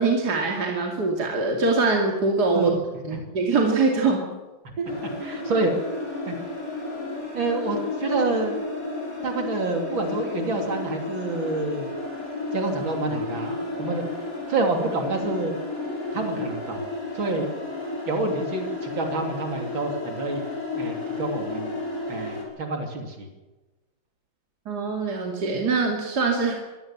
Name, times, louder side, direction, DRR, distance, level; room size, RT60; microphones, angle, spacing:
voice 1, 0.0-2.7 3.0-4.3 4.8-4.9 24.7-26.6, right 3 dB, 55° right, 1 dB, 3.1 m, -23 dB
sound 1, 4.9-22.4, left 3 dB, 45° left, 6.6 m, -32 dB
voice 2, 5.2-5.7 6.3-6.4 7.3-8.6 9.2-11.9 12.5-14.0 14.5-15.5 16.1-16.8 17.1-17.5 18.1-20.4 20.7-21.8 22.1-23.3, right 3 dB, 75° right, 3 dB, 3.7 m, -27 dB
24.0 x 16.5 x 7.4 m, 1.1 s
omnidirectional pair, 2.1 m